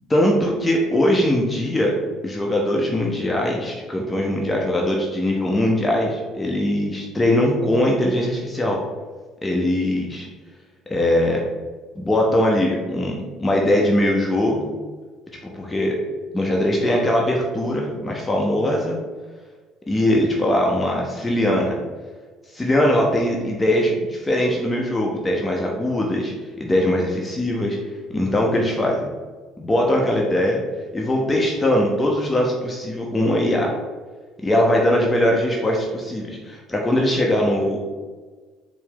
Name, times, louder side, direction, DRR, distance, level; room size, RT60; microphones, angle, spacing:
voice 1, 0.1-2.0 2.2-8.8 9.4-10.3 10.9-11.4 12.0-14.7 15.4-16.0 16.3-19.0 19.9-21.8 22.5-27.8 28.1-29.1 29.6-30.6 30.9-33.7 34.4-37.8, left 1 dB, 20° left, -1 dB, 0.7 m, -21 dB
4.4 x 2.0 x 3.8 m, 1.4 s
hypercardioid pair, 55°, 0 cm